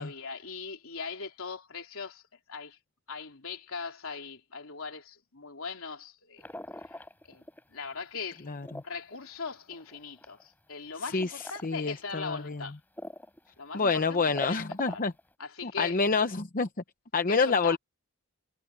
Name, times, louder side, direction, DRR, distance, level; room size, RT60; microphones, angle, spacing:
voice 1, 0.0-2.2 2.5-2.8 3.1-6.5 6.8-6.9 7.2-8.5 8.8-12.8 13.6-15.0 15.4-16.0 17.3-17.8, left 5 dB, 70° left, 3.5 m, -40 dB
sound 1, 6.4-7.8 8.1-10.4 11.2-11.7 12.2-12.3 13.0-13.4 13.7-13.8 14.1-15.2, left 1 dB, 10° left, 7.3 m, -41 dB
voice 2, 11.6-12.6 13.7-15.1 15.6-16.7 17.1-17.8, left 4 dB, 40° left, 0.8 m, -27 dB
head